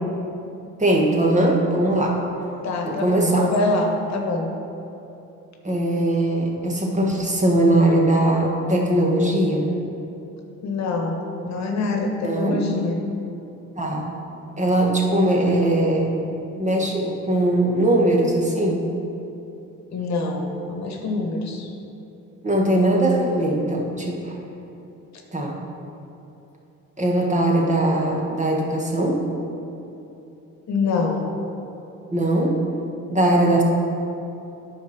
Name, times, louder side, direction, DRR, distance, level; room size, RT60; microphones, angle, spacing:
voice 1, 0.8-2.2 2.8-3.5 5.6-9.7 12.2-12.6 13.8-14.1 14.6-16.1 16.5-18.8 22.4-24.4 25.3-25.6 27.0-29.2 32.1-32.6 33.1-33.6, right 1 dB, 25° right, -1 dB, 1.4 m, -20 dB
voice 2, 2.6-4.5 10.6-13.0 19.9-21.7 30.7-31.4, left 3 dB, 65° left, 2 dB, 1.2 m, -25 dB
9.3 x 4.5 x 5.9 m, 2.8 s
cardioid pair, 90°, 30 cm